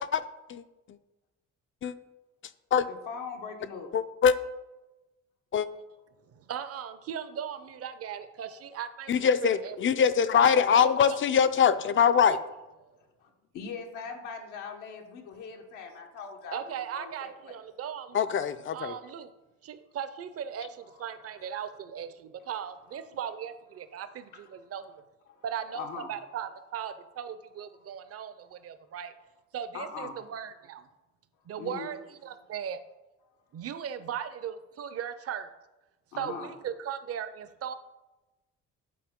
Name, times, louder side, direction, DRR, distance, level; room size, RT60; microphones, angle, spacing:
voice 1, 2.8-3.9 5.7-5.8 13.0-13.3 13.5-17.6 21.1-21.6 22.4-22.5 24.3-24.5 25.3-25.4 25.7-26.1 27.7-27.8 29.7-30.2 31.6-31.9 36.1-36.5, left 5 dB, 90° left, 2 dB, 1.0 m, -41 dB
voice 2, 3.9-4.3 5.5-5.7 9.1-12.4 18.1-18.9, left 7 dB, 40° left, 13 dB, 0.4 m, -23 dB
voice 3, 6.3-9.8 10.4-11.2 12.2-12.4 12.8-12.9 16.5-18.2 18.7-19.3 19.6-24.9 25.4-29.1 29.5-30.9 31.5-32.8 33.5-35.5 36.2-37.7, right 8 dB, 50° right, 11 dB, 0.6 m, -38 dB
8.5 x 4.2 x 3.6 m, 1.0 s
cardioid pair, 90°, 30 cm